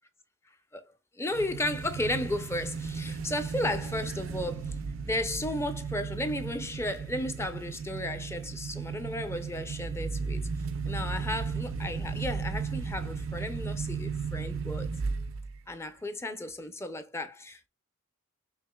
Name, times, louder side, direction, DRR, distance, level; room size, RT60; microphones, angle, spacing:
voice 1, 1.1-4.8 5.1-10.5 10.8-14.9 15.7-17.7, left 1 dB, 15° left, 0.5 m, -34 dB
sound 1, 1.3-15.6, right 5 dB, 65° right, 0.4 m, -35 dB
5.7 x 2.8 x 2.2 m
head